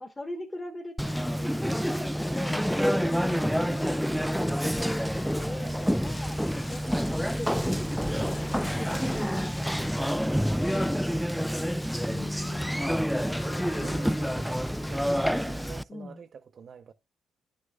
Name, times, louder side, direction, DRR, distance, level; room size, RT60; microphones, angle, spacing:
voice 1, 0.0-5.0 5.3-7.9 8.2-9.5 12.0-12.9 15.9-16.2, left 2 dB, 20° left, 1.2 m, -41 dB
sound 1, 1.0-11.0, left 4 dB, 40° left, 1.3 m, -53 dB
Conversation, 1.0-15.8, equal, ahead, 0.3 m, -28 dB
sound 2, 4.6-7.0 8.0-9.6 12.1-15.0, left 6 dB, 60° left, 0.8 m, -51 dB
voice 2, 5.5-5.8 10.4-12.4 12.8-16.9, right 6 dB, 55° right, 0.6 m, -48 dB
10.5 x 6.3 x 2.4 m
cardioid pair, 90°, 0 cm